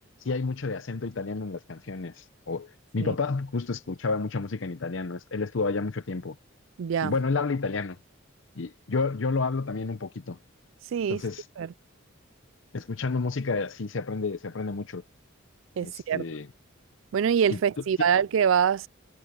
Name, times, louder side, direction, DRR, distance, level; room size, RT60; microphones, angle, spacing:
voice 1, 0.2-6.4 7.0-8.0 8.6-10.4 11.1-11.4 12.7-15.0 15.8-16.5 17.5-17.6 18.0-18.1, left 4 dB, 70° left, 0.7 m, -30 dB
voice 2, 6.8-7.1 10.9-11.2 11.6-11.7 15.8-16.2 17.1-18.9, right 7 dB, 75° right, 0.4 m, -24 dB
head